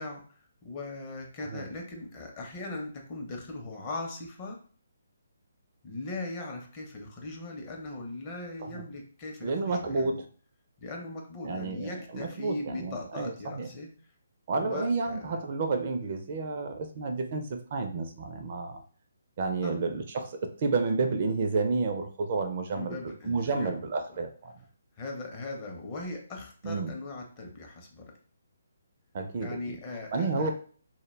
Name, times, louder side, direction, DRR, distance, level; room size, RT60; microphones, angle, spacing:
voice 1, 0.0-4.6 5.8-10.2 10.8-13.9 14.6-15.4 19.6-19.8 22.7-23.8 25.0-28.1 29.4-30.5, left 2 dB, 30° left, 1 dB, 0.6 m, -39 dB
voice 2, 9.4-10.3 11.4-13.7 14.5-18.8 19.4-24.6 26.6-26.9 29.1-29.8 30.1-30.5, right 3 dB, 45° right, 5 dB, 0.4 m, -31 dB
2.1 x 2.1 x 3.1 m, 0.42 s
figure-of-eight pair, 150°, 0 cm